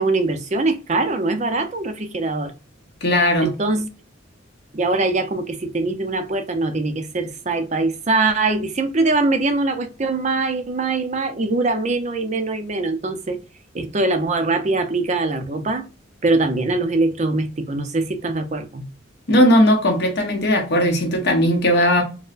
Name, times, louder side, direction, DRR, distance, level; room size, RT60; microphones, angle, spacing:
voice 1, 0.0-2.5 3.4-3.9 4.7-13.4 13.7-15.8 16.2-18.9, right 3 dB, 35° right, 0.5 m, -22 dB
voice 2, 3.0-3.5 19.3-22.0, equal, 55° left, 1.0 m, -17 dB
4.3 x 2.1 x 2.4 m
head